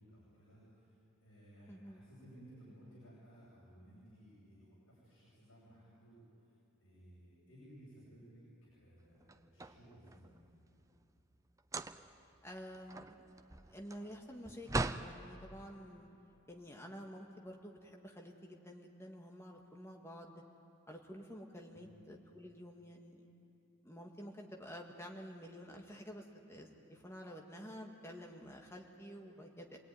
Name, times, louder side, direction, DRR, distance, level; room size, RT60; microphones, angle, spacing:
voice 1, 0.0-6.5 6.8-10.7 21.7-22.0, equal, 80° left, -8 dB, 7.7 m, -59 dB
voice 2, 1.7-2.0 12.4-13.4 13.7-14.7 15.0-16.1 16.5-20.4 20.9-23.2 23.8-29.8, equal, 10° left, 1 dB, 1.8 m, -50 dB
sound 1, 9.2-10.4 11.6-12.2 12.6-15.1, right 2 dB, 15° right, 0.5 m, -40 dB
27.5 x 19.5 x 9.6 m, 3.0 s
head